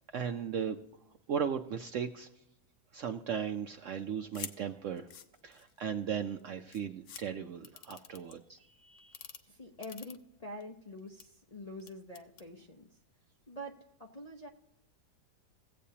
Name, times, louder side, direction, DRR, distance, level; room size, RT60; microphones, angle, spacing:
voice 1, 0.1-0.8 1.3-2.3 2.9-5.1 5.4-9.2, right 7 dB, 65° right, 6 dB, 0.7 m, -37 dB
sound 1, 4.3-4.6 5.0-5.8 6.4-6.5 6.7-7.2 7.6-8.3 9.0-9.4 9.8-10.6 11.0-11.2 11.8-12.5, left 8 dB, 75° left, 1.4 m, -46 dB
voice 2, 9.5-13.0 13.5-14.5, left 1 dB, 40° left, 0 dB, 0.5 m, -46 dB
16.5 x 8.4 x 2.8 m, 0.82 s
omnidirectional pair, 1.8 m